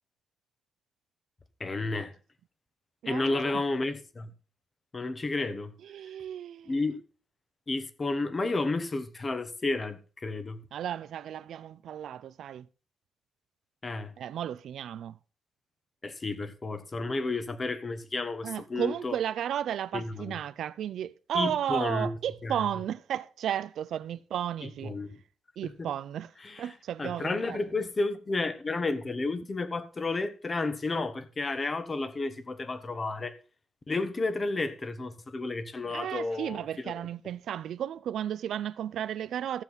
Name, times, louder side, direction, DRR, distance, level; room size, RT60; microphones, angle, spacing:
voice 1, 1.6-2.1 3.1-4.3 4.9-5.7 6.7-7.0 7.7-10.6 13.8-14.1 16.0-19.1 19.9-20.4 21.3-22.1 22.4-22.5 24.8-25.1 25.8-25.9 26.4-26.6 27.0-33.4 33.9-36.9, left 3 dB, 25° left, 1.1 m, -31 dB
voice 2, 3.0-3.6 5.8-6.8 10.7-12.7 14.2-15.2 18.4-25.0 25.6-27.6 35.8-39.6, right 10 dB, 75° right, 0.4 m, -34 dB
14.5 x 7.4 x 3.9 m
cardioid pair, 120°, 0 cm